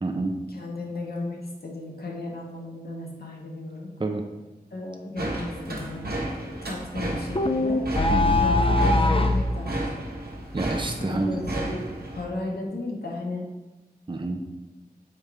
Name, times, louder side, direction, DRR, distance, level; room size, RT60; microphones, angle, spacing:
voice 1, 0.0-0.4 4.0-4.2 8.1-8.4 10.5-11.8 14.1-14.4, right 2 dB, 30° right, 3 dB, 0.7 m, -28 dB
voice 2, 0.5-3.9 4.7-6.1 6.4-7.8 8.4-9.8 11.0-11.8 12.1-13.4, left 2 dB, 90° left, -1 dB, 1.0 m, -34 dB
sound 1, 5.2-12.3, right 1 dB, 90° right, 1.1 m, -33 dB
sound 2, 7.4-9.5, left 2 dB, 35° left, 0.5 m, -21 dB
7.2 x 4.7 x 3.4 m, 1.1 s
wide cardioid pair, 45°, 16 cm